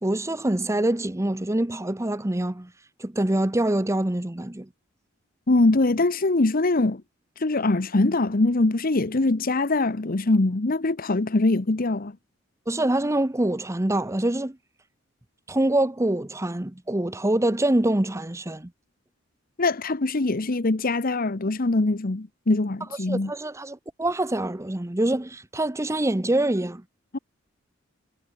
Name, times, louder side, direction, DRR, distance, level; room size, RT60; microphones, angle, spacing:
voice 1, 0.0-2.7 3.0-4.7 12.7-14.6 15.5-18.7 23.1-26.8, right 1 dB, 15° right, 0.8 m, -25 dB
voice 2, 5.5-7.0 7.4-12.1 19.6-23.3 27.1-27.2, left 2 dB, 45° left, 0.9 m, -23 dB
head